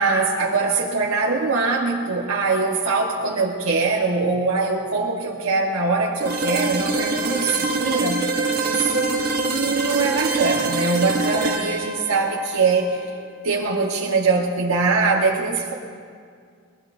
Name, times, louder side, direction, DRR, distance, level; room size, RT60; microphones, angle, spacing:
voice 1, 0.0-8.3 8.6-13.1 13.4-15.7, right 4 dB, 80° right, -2 dB, 1.3 m, -22 dB
sound 1, 6.2-14.0, right 3 dB, 45° right, 1.3 m, -25 dB
23.0 x 21.0 x 2.7 m, 2.1 s
head